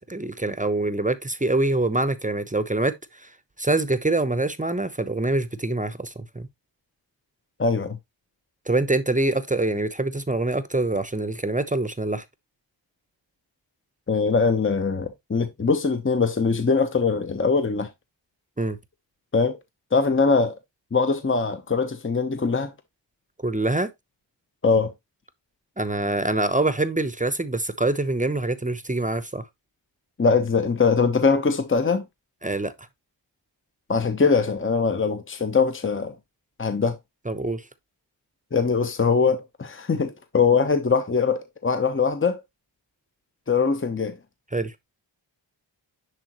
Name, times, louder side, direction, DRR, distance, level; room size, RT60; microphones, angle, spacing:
voice 1, 0.1-3.3 3.6-6.5 8.7-12.2 18.6-18.8 23.4-23.9 25.8-29.4 32.4-32.7 37.3-37.7 44.5-44.7, right 2 dB, 15° right, 0.8 m, -25 dB
voice 2, 7.6-8.0 14.1-17.9 19.3-19.6 19.9-20.5 20.9-22.7 24.6-24.9 30.2-32.0 33.9-36.2 36.6-37.0 38.5-42.4 43.5-44.1, left 4 dB, 25° left, 1.0 m, -22 dB
10.5 x 3.8 x 3.0 m
cardioid pair, 65°, 45 cm